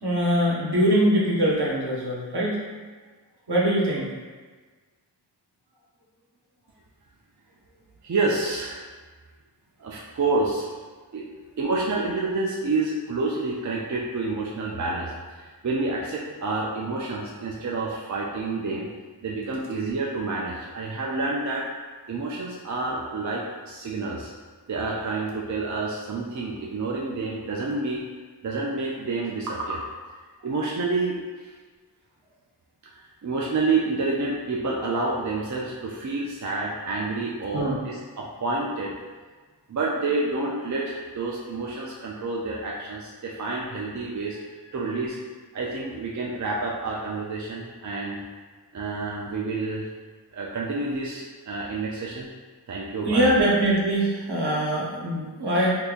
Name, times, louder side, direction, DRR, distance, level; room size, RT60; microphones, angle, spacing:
voice 1, 0.0-2.6 3.5-4.1 37.5-37.8 53.1-55.7, right 1 dB, 70° right, -5 dB, 0.9 m, -22 dB
voice 2, 8.0-8.9 9.8-10.8 11.1-11.3 11.6-18.9 19.2-21.6 22.1-24.3 24.7-28.0 28.4-29.8 30.4-31.5 32.9-38.9 39.7-45.2 45.5-48.2 48.7-49.9 50.3-52.3 52.7-53.3, right 3 dB, 45° right, -3 dB, 0.4 m, -29 dB
3.6 x 2.8 x 2.4 m, 1.4 s
wide cardioid pair, 60°, 41 cm